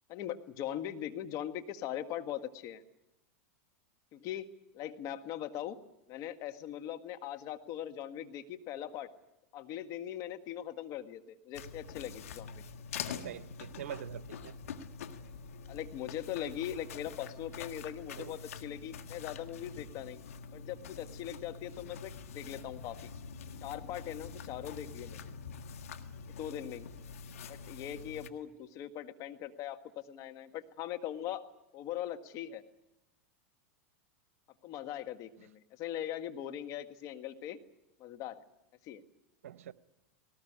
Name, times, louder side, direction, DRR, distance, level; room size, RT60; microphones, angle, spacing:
voice 1, 0.1-2.8 4.1-5.8 6.1-9.1 9.5-12.6 15.7-20.2 20.5-23.1 23.6-25.3 26.3-26.9 27.5-29.8 30.1-31.5 31.7-32.6 34.6-37.6 38.0-38.4 38.8-39.0, left 11 dB, 45° left, 8 dB, 1.6 m, -40 dB
sound 1, 11.5-28.3, left 6 dB, 80° left, 1.5 m, -45 dB
voice 2, 13.1-14.5 18.2-18.4 39.4-39.7, right 10 dB, 75° right, 16 dB, 0.8 m, -44 dB
19.5 x 19.0 x 10.0 m, 0.94 s
hypercardioid pair, 105°, 8 cm